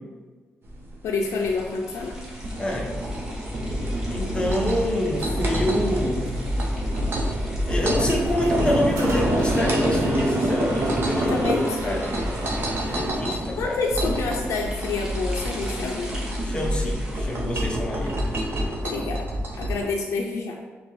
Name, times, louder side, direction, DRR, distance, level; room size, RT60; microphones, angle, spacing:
sound 1, 0.6-19.9, right 1 dB, 50° right, 0.8 m, -27 dB
voice 1, 1.0-2.2 11.2-12.0 13.6-16.1 18.8-19.3 19.6-20.6, left 4 dB, 90° left, 0 dB, 0.4 m, -28 dB
sound 2, 1.2-18.9, equal, 10° right, 1.0 m, -42 dB
voice 2, 2.6-2.9 4.1-6.3 7.6-11.3 11.8-12.1 12.9-13.8 16.4-18.2, left 1 dB, 20° left, 0 dB, 0.6 m, -26 dB
Squeak, 8.0-13.3, right 1 dB, 85° right, 0.9 m, -37 dB
5.8 x 2.2 x 3.1 m, 1.4 s
cardioid pair, 115°, 5 cm